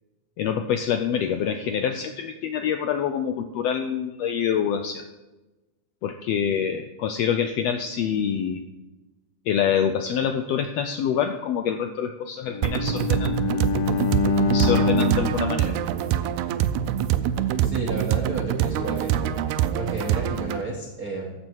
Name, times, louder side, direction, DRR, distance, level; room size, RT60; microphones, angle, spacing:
voice 1, 0.4-5.0 6.0-8.6 9.5-13.4 14.5-15.8, left 8 dB, 90° left, 8 dB, 1.4 m, -26 dB
Bowed string instrument, 12.5-16.6, left 3 dB, 70° left, 1.7 m, -26 dB
sound 1, 12.6-20.6, right 10 dB, 80° right, 1.9 m, -25 dB
voice 2, 17.6-19.4 19.7-21.3, right 3 dB, 55° right, 0 dB, 1.0 m, -31 dB
13.5 x 7.5 x 4.6 m, 1.1 s
omnidirectional pair, 3.5 m